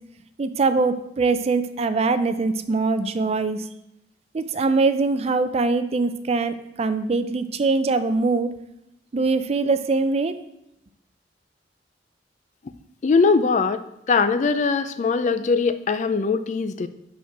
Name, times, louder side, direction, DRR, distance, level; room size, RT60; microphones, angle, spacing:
voice 1, 0.4-3.7 4.3-8.5 9.1-10.4, right 3 dB, 35° right, 11 dB, 0.4 m, -22 dB
voice 2, 13.0-13.8 14.1-16.9, left 4 dB, 45° left, 11 dB, 0.4 m, -21 dB
5.9 x 4.3 x 5.8 m, 0.81 s
head